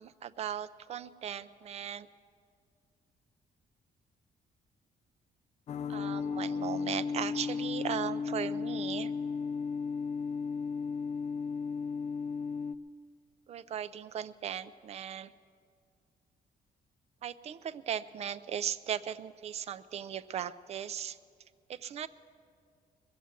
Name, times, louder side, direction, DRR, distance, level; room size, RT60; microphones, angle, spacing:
voice 1, 0.0-2.1 5.9-9.1 13.5-15.3 17.2-21.2 21.7-22.1, right 9 dB, 45° right, 14 dB, 0.4 m, -37 dB
sound 1, 5.7-12.8, left 5 dB, 45° left, 0.4 m, -34 dB
21.0 x 7.6 x 8.0 m, 2.2 s
cardioid pair, 170°, 15 cm